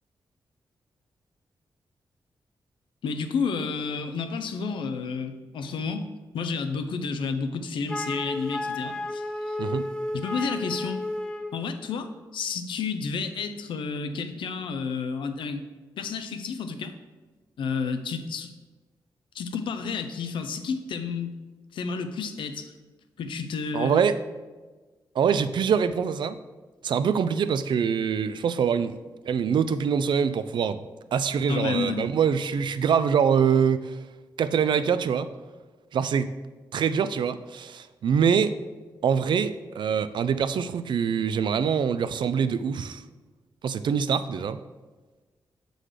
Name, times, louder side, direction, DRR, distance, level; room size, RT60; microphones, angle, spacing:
voice 1, 3.0-6.1 6.3-9.6 10.1-11.0 11.5-15.6 16.0-16.9 17.6-18.5 19.3-21.4 21.7-22.7 23.2-24.1 31.5-32.1, left 5 dB, 85° left, 8 dB, 0.5 m, -31 dB
Wind instrument woodwind instrument, 7.9-11.6, left 1 dB, 10° left, 0.7 m, -32 dB
voice 2, 23.7-24.2 25.2-26.4 26.8-29.0 29.3-34.0 34.4-35.3 35.9-36.3 36.7-38.6 39.0-43.0 43.6-44.6, right 7 dB, 70° right, 13 dB, 0.4 m, -24 dB
6.4 x 3.8 x 4.9 m, 1.3 s
cardioid pair, 60°, 8 cm